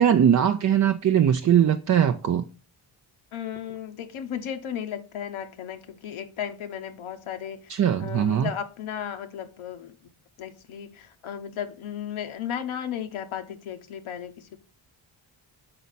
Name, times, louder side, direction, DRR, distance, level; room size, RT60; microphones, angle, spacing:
voice 1, 0.0-2.4 7.7-8.5, right 9 dB, 40° right, 0.4 m, -20 dB
voice 2, 3.3-10.1 10.4-14.6, left 9 dB, 75° left, 0.8 m, -35 dB
5.8 x 4.1 x 4.0 m
cardioid pair, 65°, 49 cm